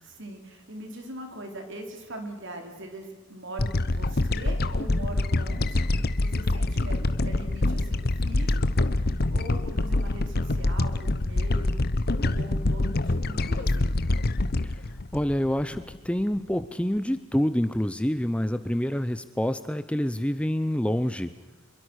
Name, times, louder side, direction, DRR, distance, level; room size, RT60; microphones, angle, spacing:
voice 1, 0.0-11.9 12.1-14.0, right 1 dB, 55° right, 4 dB, 4.2 m, -41 dB
sound 1, 3.6-16.1, left 2 dB, 45° left, 0.9 m, -26 dB
voice 2, 15.1-21.3, equal, 5° left, 11 dB, 0.6 m, -27 dB
26.5 x 22.5 x 6.4 m, 1.2 s
head